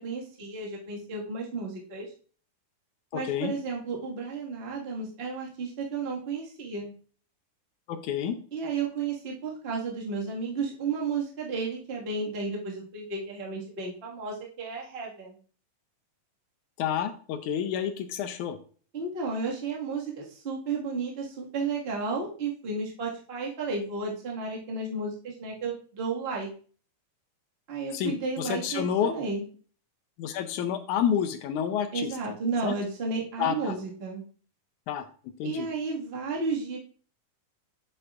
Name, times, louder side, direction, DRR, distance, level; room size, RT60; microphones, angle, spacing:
voice 1, 0.0-2.1 3.1-6.9 8.5-15.4 18.9-26.5 27.7-29.4 31.9-34.2 35.4-36.8, right 4 dB, 30° right, -2 dB, 1.1 m, -33 dB
voice 2, 3.1-3.5 7.9-8.4 16.8-18.6 27.9-29.1 30.2-32.2 32.6-32.8 33.4-33.8 34.9-35.1 35.4-35.7, left 8 dB, 75° left, 7 dB, 1.9 m, -29 dB
7.9 x 7.9 x 2.4 m, 0.41 s
omnidirectional pair, 3.8 m